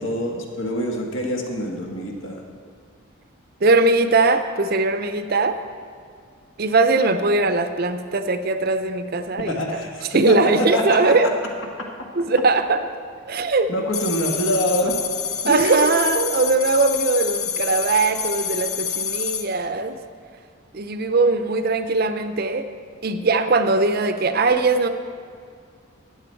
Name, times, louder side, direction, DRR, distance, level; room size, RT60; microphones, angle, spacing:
voice 1, 0.0-2.4 9.5-11.3 13.7-15.0 15.4-15.7, equal, 70° left, 1 dB, 1.7 m, -25 dB
voice 2, 3.6-5.6 6.6-9.8 10.1-11.3 12.2-12.8 13.3-13.7 15.5-20.0 20.7-22.7 23.0-24.9, right 3 dB, 45° right, 9 dB, 0.6 m, -20 dB
sound 1, 13.9-19.5, left 7 dB, 90° left, 1.0 m, -27 dB
14.0 x 9.5 x 4.5 m, 2.2 s
head